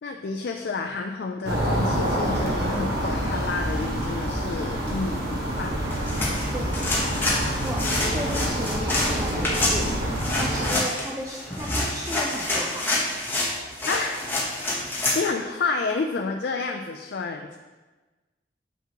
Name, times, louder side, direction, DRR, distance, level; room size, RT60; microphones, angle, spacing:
voice 1, 0.0-5.8 10.7-10.9 13.9-14.3 14.7-14.9 15.1-17.6, left 4 dB, 65° left, 3 dB, 0.4 m, -30 dB
sound 1, 1.4-10.7, equal, 65° right, 1.2 m, -27 dB
sound 2, 5.9-15.2, left 2 dB, 10° left, 0.9 m, -27 dB
voice 2, 7.5-7.9 8.1-10.1 10.3-12.9, right 1 dB, 20° right, -3 dB, 0.5 m, -34 dB
7.0 x 5.9 x 2.9 m, 1.2 s
head